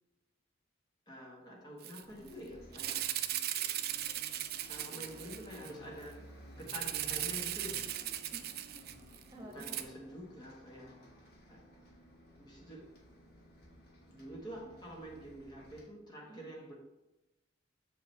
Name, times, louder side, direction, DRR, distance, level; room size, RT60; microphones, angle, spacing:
voice 1, 1.1-3.0 4.7-6.3 6.6-7.9 9.3-11.0 11.5-11.6 12.4-12.9 14.1-16.8, equal, 20° left, -2 dB, 1.1 m, -47 dB
Rattle (instrument), 1.8-2.0 2.3-2.4 2.7-5.7 6.7-9.2 9.6-9.8, right 12 dB, 55° right, 0.4 m, -37 dB
Bus, 2.0-15.8, equal, 55° left, 1.7 m, -56 dB
voice 2, 8.2-9.8 16.2-16.5, right 1 dB, 20° right, 0 dB, 1.3 m, -54 dB
7.4 x 4.7 x 3.2 m, 1.0 s
head